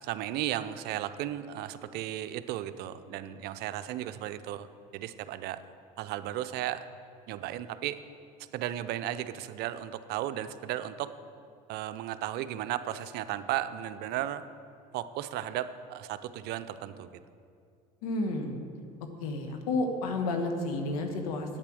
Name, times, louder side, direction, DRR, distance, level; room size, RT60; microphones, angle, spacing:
voice 1, 0.0-4.7 4.9-5.6 6.0-6.9 7.3-8.0 8.5-11.1 11.7-14.5 14.9-17.1, right 12 dB, 60° right, 12 dB, 0.6 m, -35 dB
voice 2, 18.0-18.6 19.2-21.6, left 2 dB, 85° left, 4 dB, 1.3 m, -31 dB
8.7 x 8.6 x 6.2 m, 2.4 s
hypercardioid pair, 80°, 18 cm